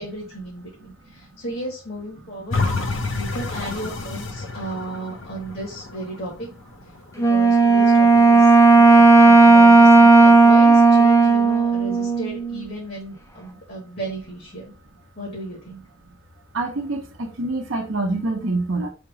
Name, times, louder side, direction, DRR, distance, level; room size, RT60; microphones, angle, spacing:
voice 1, 0.0-6.5 7.3-14.7 15.2-15.8, right 1 dB, 50° left, 1.5 m, -34 dB
sound 1, 2.5-7.5 8.0-8.1, left 3 dB, 70° left, 0.8 m, -29 dB
Wind instrument woodwind instrument, 7.2-12.6, right 3 dB, 15° left, 0.5 m, -13 dB
voice 2, 16.5-18.9, right 2 dB, 65° right, 0.8 m, -26 dB
3.5 x 3.0 x 4.7 m
head